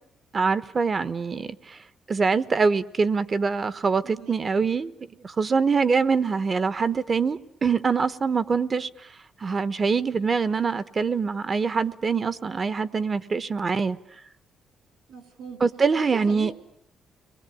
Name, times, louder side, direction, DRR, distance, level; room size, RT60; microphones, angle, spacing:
voice 1, 0.3-1.8 2.1-4.9 5.2-8.9 9.4-14.0 15.6-16.5, right 5 dB, 35° right, 1.1 m, -24 dB
voice 2, 4.0-4.4 15.1-15.6 16.3-16.5, right 6 dB, 75° right, 4.6 m, -40 dB
30.0 x 22.0 x 8.6 m
cardioid pair, 90°, 0 cm